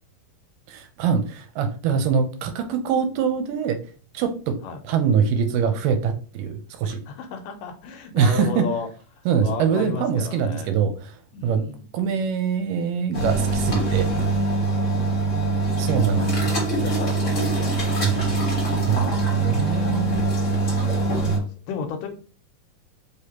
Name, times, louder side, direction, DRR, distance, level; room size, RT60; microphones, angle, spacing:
voice 1, 0.7-3.8 4.1-4.6 4.8-7.0 8.1-8.7 9.3-11.2 11.4-11.6 11.9-14.1 15.8-16.7 18.0-18.5 18.8-20.2, right 6 dB, 80° right, 7 dB, 2.3 m, -24 dB
voice 2, 7.1-8.9 9.4-10.8 11.3-11.9 14.8-15.4 16.2-18.2 20.3-22.1, left 5 dB, 80° left, 5 dB, 2.4 m, -34 dB
sound 1, 13.1-21.4, right 2 dB, 40° left, 1.1 m, -23 dB
5.2 x 3.4 x 2.9 m, 0.37 s
omnidirectional pair, 3.9 m